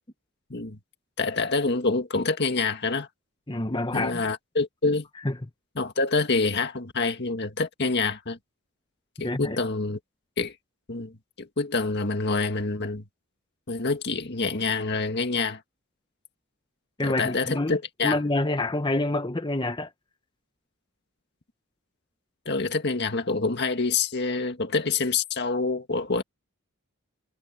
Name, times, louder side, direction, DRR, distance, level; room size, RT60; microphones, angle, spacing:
voice 1, 1.2-3.1 3.9-5.1 5.8-8.4 9.2-10.0 10.4-10.5 10.9-13.1 13.7-15.6 17.0-18.2 22.5-26.2, left 3 dB, 50° left, 1.9 m, -26 dB
voice 2, 3.5-4.2 5.2-5.4 9.2-9.6 17.0-19.9, left 2 dB, 20° left, 1.1 m, -27 dB
head